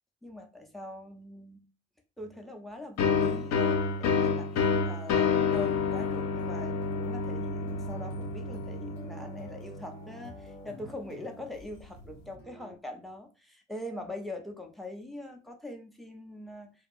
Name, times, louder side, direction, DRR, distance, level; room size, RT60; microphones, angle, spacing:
voice 1, 0.2-1.6 2.2-16.9, left 1 dB, ahead, 0.6 m, -42 dB
sound 1, 3.0-10.5, left 5 dB, 45° left, 0.5 m, -29 dB
sound 2, 5.2-12.8, equal, 90° left, 0.7 m, -50 dB
2.8 x 2.2 x 2.5 m
figure-of-eight pair, 45°, 36 cm